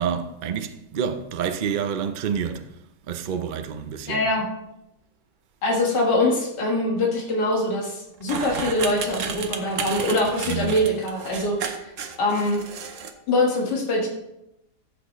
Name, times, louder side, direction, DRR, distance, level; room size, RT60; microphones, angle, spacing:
voice 1, 0.0-2.7 3.1-4.2 10.5-10.8, right 7 dB, 80° right, 0.4 m, -28 dB
voice 2, 4.1-4.5 5.6-11.9 12.2-12.6 13.3-14.1, left 1 dB, 90° left, 2.2 m, -23 dB
sound 1, 8.2-13.1, right 6 dB, 55° right, 1.1 m, -32 dB
14.5 x 6.0 x 3.1 m
omnidirectional pair, 1.8 m